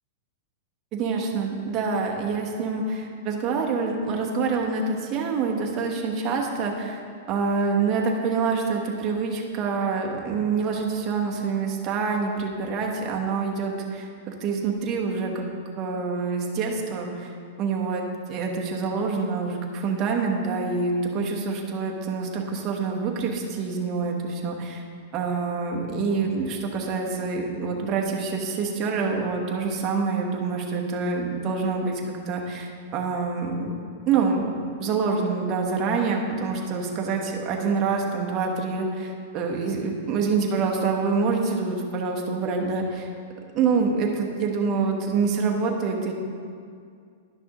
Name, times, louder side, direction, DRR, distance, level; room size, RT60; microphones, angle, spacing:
voice 1, 0.9-7.0 7.3-15.4 15.8-24.8 25.1-33.8 34.1-34.5 34.8-43.1 43.5-46.1, right 4 dB, 30° right, 0 dB, 1.0 m, -26 dB
11.0 x 6.1 x 3.0 m, 2.3 s
hypercardioid pair, 145°, 0 cm